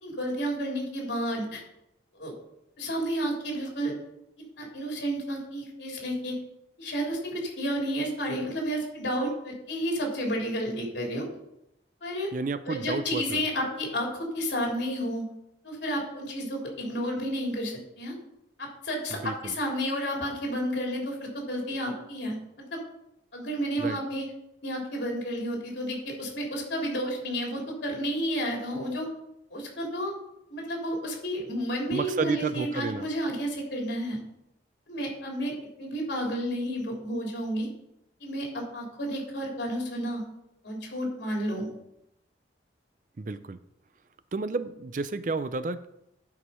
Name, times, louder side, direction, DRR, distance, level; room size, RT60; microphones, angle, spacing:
voice 1, 0.0-1.6 2.1-2.3 2.8-3.9 4.6-6.4 6.8-11.3 12.0-12.3 12.7-15.2 15.6-18.2 18.6-22.4 22.7-22.8 23.3-24.2 24.6-29.1 29.5-30.1 30.5-34.2 34.9-35.5 35.8-37.7 38.2-40.2 40.6-41.7, equal, 75° left, -1 dB, 3.3 m, -31 dB
voice 2, 12.3-13.4 19.2-19.5 23.8-24.0 31.9-33.1 43.2-43.6 44.3-45.9, right 3 dB, 45° right, 13 dB, 0.4 m, -31 dB
11.0 x 4.9 x 5.6 m, 0.83 s
head